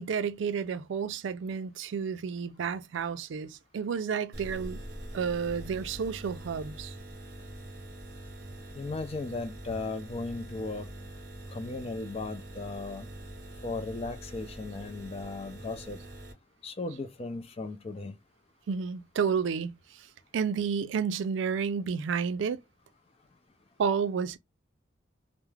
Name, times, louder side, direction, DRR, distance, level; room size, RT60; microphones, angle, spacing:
voice 1, 0.0-4.8 5.1-6.9 18.7-20.1 20.3-22.6 23.8-24.4, right 6 dB, 75° right, 0.4 m, -31 dB
sound 1, 4.3-16.3, right 1 dB, 55° right, 0.8 m, -44 dB
voice 2, 8.8-10.9 11.5-13.1 13.6-16.0 16.6-18.2, left 3 dB, 30° left, 0.4 m, -36 dB
2.3 x 2.0 x 3.1 m
head